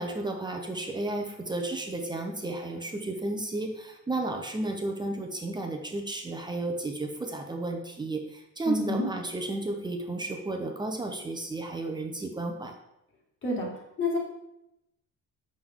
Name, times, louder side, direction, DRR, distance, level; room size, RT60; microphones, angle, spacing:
voice 1, 0.0-12.7, right 2 dB, 15° right, 3 dB, 0.8 m, -33 dB
voice 2, 8.7-9.1 13.4-13.7 14.0-14.2, left 2 dB, 35° left, -1 dB, 2.2 m, -28 dB
7.6 x 6.3 x 3.7 m, 0.86 s
cardioid pair, 150°, 32 cm